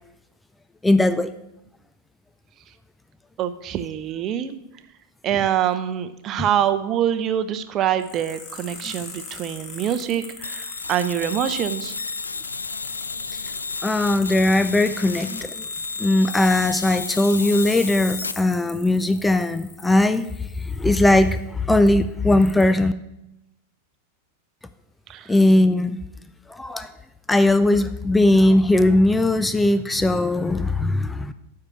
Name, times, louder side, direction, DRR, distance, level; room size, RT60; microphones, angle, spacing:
voice 1, 0.8-1.3 6.4-6.5 13.8-15.6 16.0-22.9 25.3-26.0 26.5-26.9 27.3-31.3, left 1 dB, 5° left, 11 dB, 0.4 m, -19 dB
voice 2, 3.4-4.6 5.2-11.9 25.1-25.3, right 10 dB, 30° right, 10 dB, 0.7 m, -25 dB
sound 1, 8.0-21.4 21.9-22.0 22.4-22.6, left 5 dB, 35° left, 1.5 m, -40 dB
sound 2, 10.4-18.3, left 4 dB, 75° left, 0.3 m, -32 dB
9.8 x 4.7 x 6.8 m, 0.88 s
figure-of-eight pair, 90°, 0 cm